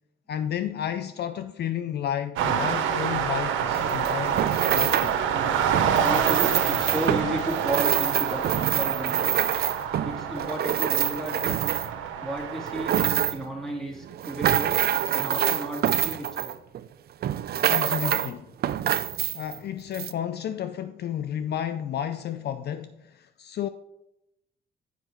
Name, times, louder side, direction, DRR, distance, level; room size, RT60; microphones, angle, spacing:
voice 1, 0.3-4.4 4.7-5.1 17.7-18.5 19.3-23.7, left 9 dB, 55° left, 0.4 m, -31 dB
sound 1, 2.4-13.0, right 8 dB, 85° right, 0.8 m, -27 dB
sound 2, 3.7-5.2 5.7-12.1 12.5-13.5 14.0-16.9 17.2-18.3 18.6-19.6 19.9-20.1, right 11 dB, 55° right, 0.4 m, -26 dB
voice 2, 6.0-9.4 10.0-11.6 12.2-13.0 13.3-14.8 15.1-16.5, right 1 dB, ahead, 2.4 m, -33 dB
8.2 x 5.3 x 4.5 m
cardioid pair, 90°, 20 cm